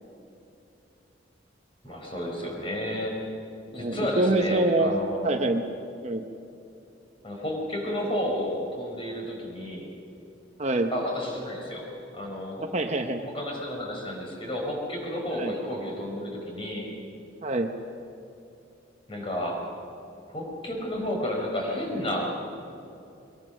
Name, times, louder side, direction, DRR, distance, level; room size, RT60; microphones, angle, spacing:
voice 1, 1.8-3.2 3.7-5.3 7.2-9.9 10.9-12.7 13.2-16.9 19.1-19.6 20.3-22.4, left 1 dB, 30° left, 0 dB, 4.9 m, -31 dB
voice 2, 3.7-4.9 5.2-5.6 6.0-6.2 10.6-10.9 12.6-13.2 15.4-15.5 17.4-17.7, right 2 dB, 35° right, 5 dB, 1.0 m, -25 dB
22.5 x 22.0 x 6.4 m, 2.7 s
head